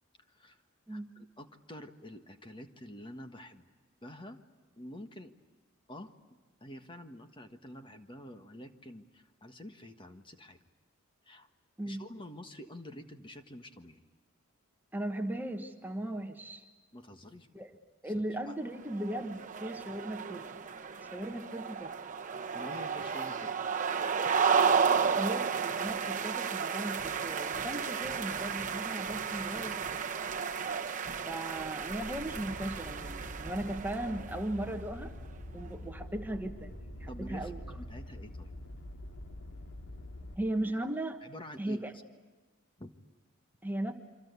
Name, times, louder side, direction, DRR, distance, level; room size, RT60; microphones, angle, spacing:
voice 1, 0.3-0.6 0.9-3.7 4.0-4.4 4.8-5.3 5.9-6.1 6.6-10.6 11.2-11.5 11.9-14.0 16.9-17.5 18.0-18.5 22.5-23.7 37.1-38.5 41.2-41.9 42.8-42.9, left 1 dB, 25° left, 7 dB, 1.5 m, -48 dB
voice 2, 14.9-16.6 17.5-17.7 18.0-20.5 21.1-21.9 25.0-30.0 31.3-35.1 35.5-37.6 40.4-41.2 41.6-41.9 43.6-43.9, right 1 dB, 10° right, 5 dB, 1.3 m, -37 dB
sound 1, 18.9-34.5, right 6 dB, 35° right, 1.1 m, -33 dB
sound 2, 31.8-40.3, equal, 60° left, 3.2 m, -45 dB
28.0 x 25.0 x 8.2 m, 1.3 s
head